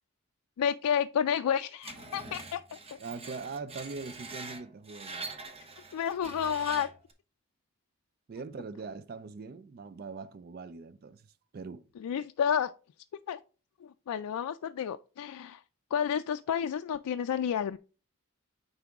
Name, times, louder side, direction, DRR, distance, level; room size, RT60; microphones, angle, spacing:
voice 1, 0.6-2.8 5.9-6.9 12.0-12.7 13.3-13.4 13.8-15.6 15.9-17.8, left 8 dB, 85° left, 0.3 m, -30 dB
Screech, 1.8-7.1, right 3 dB, 25° right, 0.9 m, -44 dB
voice 2, 3.0-5.3 8.3-11.9, right 4 dB, 45° right, 0.3 m, -42 dB
9.4 x 4.0 x 3.5 m
head